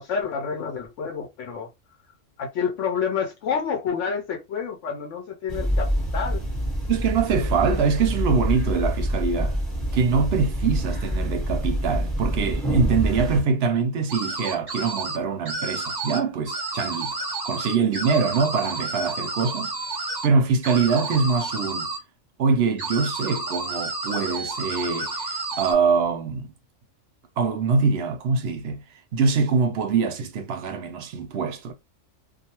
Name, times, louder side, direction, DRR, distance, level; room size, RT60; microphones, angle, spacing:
voice 1, 0.0-1.7 2.4-6.4, left 6 dB, 75° left, 1.0 m, -29 dB
sound 1, 5.5-13.4, equal, ahead, 0.9 m, -26 dB
voice 2, 6.9-9.6 9.9-17.1 17.4-19.7 20.2-21.9 22.4-26.5 27.4-31.7, right 5 dB, 65° right, 0.7 m, -24 dB
sound 2, 14.1-15.2 15.5-16.2 16.5-20.3 20.6-22.0 22.8-25.7, right 2 dB, 30° right, 0.4 m, -30 dB
2.4 x 2.3 x 2.8 m
omnidirectional pair, 1.3 m